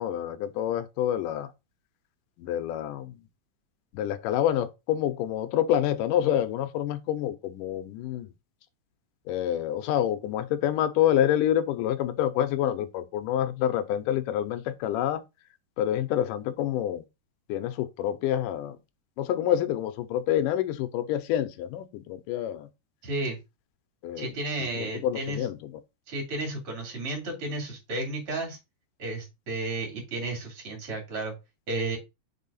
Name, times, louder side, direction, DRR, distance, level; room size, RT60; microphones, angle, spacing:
voice 1, 0.0-1.5 2.4-3.2 3.9-8.3 9.3-15.2 15.8-17.0 17.5-18.8 19.2-22.7 24.0-24.3 24.6-25.6, left 11 dB, 80° left, 2.3 m, -27 dB
voice 2, 23.0-23.4 24.2-25.5 26.1-28.6 29.0-31.3 31.7-32.0, right 2 dB, 40° right, 3.7 m, -32 dB
6.3 x 4.5 x 4.1 m
omnidirectional pair, 3.9 m